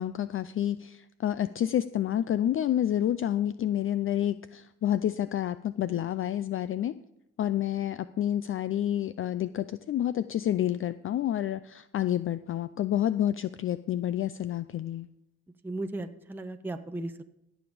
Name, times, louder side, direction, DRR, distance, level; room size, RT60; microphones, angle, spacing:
voice 1, 0.0-6.9 7.4-15.1, left 11 dB, 45° left, 14 dB, 0.4 m, -29 dB
voice 2, 15.6-17.2, right 2 dB, 5° right, 8 dB, 0.7 m, -36 dB
16.5 x 7.1 x 5.0 m, 0.85 s
cardioid pair, 90°, 30 cm